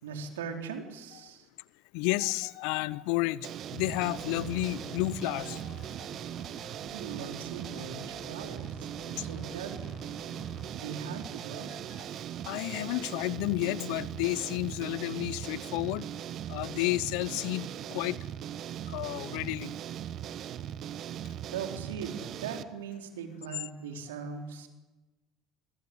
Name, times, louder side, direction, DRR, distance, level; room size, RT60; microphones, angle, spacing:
voice 1, 0.0-1.5 6.9-9.9 10.7-11.7 21.5-24.7, right 6 dB, 80° right, 4.3 m, -40 dB
voice 2, 1.9-5.8 12.5-16.1 16.5-18.2 18.9-19.7, left 19 dB, 70° left, 0.8 m, -31 dB
sound 1, 3.4-22.6, right 10 dB, 50° right, 1.5 m, -39 dB
sound 2, 4.0-10.7, left 4 dB, 35° left, 4.9 m, -52 dB
29.0 x 22.0 x 8.3 m
hypercardioid pair, 65°, 0 cm